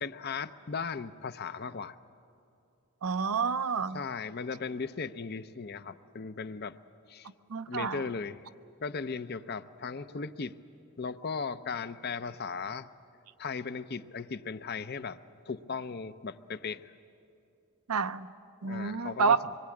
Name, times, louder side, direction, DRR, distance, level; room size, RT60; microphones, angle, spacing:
voice 1, 0.0-2.0 3.9-6.8 7.1-7.3 7.7-8.4 8.8-10.6 11.0-12.9 13.4-15.2 15.5-16.9 18.6-19.5, left 5 dB, 45° left, 12 dB, 0.6 m, -37 dB
voice 2, 3.0-4.0 7.5-8.0 17.9-18.3 18.6-19.4, right 5 dB, 85° right, 12 dB, 0.7 m, -29 dB
25.5 x 22.0 x 8.6 m, 2.6 s
head